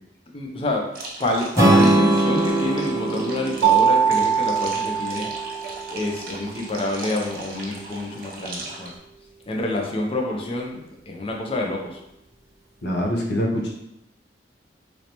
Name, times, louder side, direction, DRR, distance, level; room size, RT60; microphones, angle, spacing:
voice 1, 0.3-0.8 1.2-5.3 5.9-8.9 9.5-10.8 11.1-12.0, left 1 dB, 30° left, 0 dB, 0.5 m, -27 dB
sound 1, 0.9-8.9, right 2 dB, 55° right, 0.7 m, -38 dB
Strum, 1.5-5.7, right 1 dB, 15° right, 0.5 m, -22 dB
Mallet percussion, 3.6-6.1, right 8 dB, 85° right, 0.3 m, -21 dB
voice 2, 12.8-13.7, equal, 70° left, -1 dB, 0.7 m, -24 dB
3.2 x 2.7 x 2.9 m, 0.84 s
head